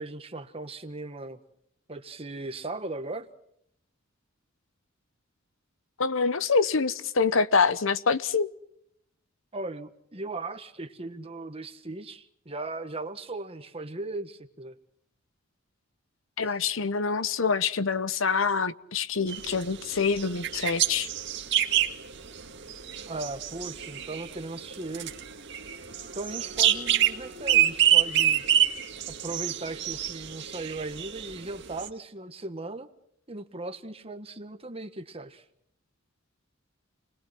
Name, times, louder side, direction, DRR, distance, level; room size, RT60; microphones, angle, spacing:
voice 1, 0.0-1.4 1.9-3.3 9.5-14.8 23.1-25.1 26.1-28.5 29.1-32.9 33.3-35.4, right 2 dB, 30° right, 1.6 m, -37 dB
voice 2, 6.0-8.5 16.4-21.1, left 5 dB, 75° left, 0.9 m, -26 dB
sound 1, 19.3-31.9, right 10 dB, 60° right, 2.0 m, -27 dB
29.5 x 21.5 x 6.0 m
head